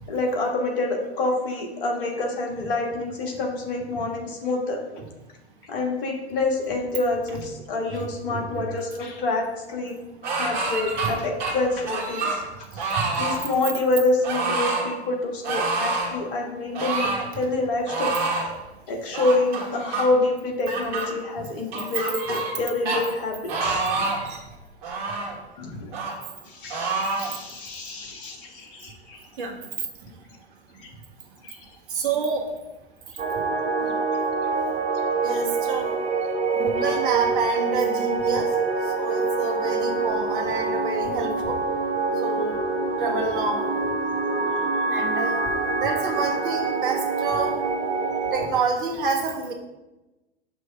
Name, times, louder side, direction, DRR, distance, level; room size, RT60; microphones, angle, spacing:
voice 1, 0.1-4.8 5.7-10.0 10.2-12.5 12.7-18.1 18.9-24.1 25.6-25.9 26.4-29.2 30.8-30.9 31.4-31.6, left 2 dB, 50° left, 1 dB, 1.4 m, -27 dB
voice 2, 7.9-8.7 24.2-24.4 29.4-29.6 31.9-32.5 35.2-35.9 36.5-38.5 39.0-41.6 42.2-42.6 43.0-43.6 44.9-45.5 45.8-47.6 48.3-49.5, right 4 dB, 50° right, 2 dB, 1.3 m, -28 dB
sound 1, 10.2-11.1 11.4-12.4 12.8-13.4 14.2-14.8 15.4-16.1 16.7-17.3 17.9-18.5 19.1-20.0 20.7-21.1 21.7-22.6 22.9-23.0 23.5-24.3 24.8-25.3 25.9-26.1 26.7-27.3, right 3 dB, 35° right, 1.7 m, -27 dB
sound 2, 33.2-48.5, right 4 dB, 20° right, 0.9 m, -25 dB
6.1 x 3.2 x 5.6 m, 1.1 s
figure-of-eight pair, 95°, 33 cm